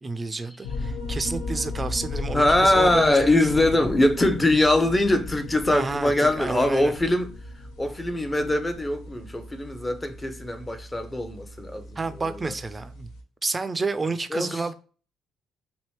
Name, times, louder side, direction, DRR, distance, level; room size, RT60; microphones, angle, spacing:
voice 1, 0.0-3.5 5.7-6.9 12.0-13.1 13.4-14.7, right 3 dB, 25° right, 0.4 m, -30 dB
sound 1, 0.6-13.2, left 2 dB, 75° left, 0.6 m, -36 dB
voice 2, 2.3-7.3 7.8-11.9 14.3-14.6, left 1 dB, 20° left, 0.6 m, -22 dB
2.9 x 2.7 x 3.1 m
hypercardioid pair, 50°, 0 cm